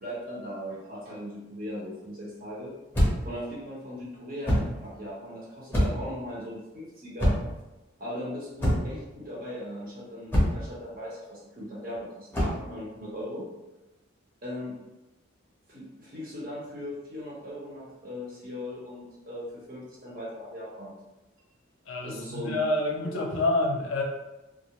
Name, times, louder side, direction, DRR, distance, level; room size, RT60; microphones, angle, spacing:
voice 1, 0.0-2.7 3.2-7.4 8.0-13.5 14.4-14.8 15.7-20.9 22.0-22.6, equal, 45° right, -5 dB, 0.8 m, -38 dB
sound 1, 2.9-3.3 4.4-4.8 5.7-6.1 7.2-7.6 8.6-9.0 10.3-10.7 12.3-12.6, equal, 10° left, 0.7 m, -25 dB
voice 2, 21.9-24.0, left 2 dB, 80° left, 0 dB, 0.5 m, -27 dB
2.4 x 2.0 x 2.9 m, 1.0 s
head